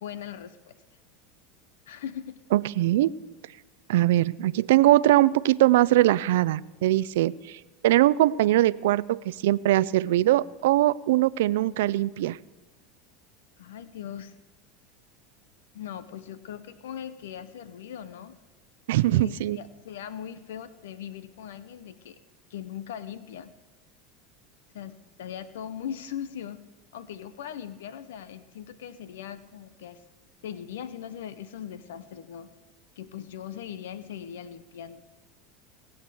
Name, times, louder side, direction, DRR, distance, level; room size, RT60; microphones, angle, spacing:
voice 1, 0.0-0.8 1.9-2.4 13.6-14.4 15.7-18.4 19.1-22.2 22.5-23.5 24.7-26.6 26.9-30.0 30.4-32.5 33.0-35.0, left 9 dB, 85° left, 14 dB, 0.7 m, -39 dB
voice 2, 2.5-3.1 3.9-12.4 18.9-19.6, right 15 dB, 80° right, 19 dB, 0.4 m, -22 dB
19.5 x 8.0 x 6.8 m, 1.1 s
supercardioid pair, 110°, 0 cm